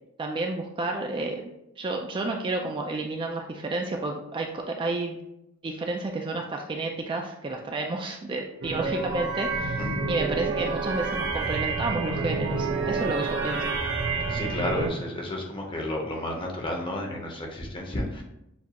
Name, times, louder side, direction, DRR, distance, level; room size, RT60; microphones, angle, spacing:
voice 1, 0.2-1.4 1.8-5.2 5.6-13.7, right 2 dB, 25° right, 2 dB, 0.3 m, -31 dB
sound 1, 8.6-14.9, right 3 dB, 65° right, 1.0 m, -28 dB
voice 2, 14.3-18.2, left 1 dB, 25° left, 1 dB, 0.8 m, -32 dB
7.1 x 2.4 x 2.9 m, 0.85 s
head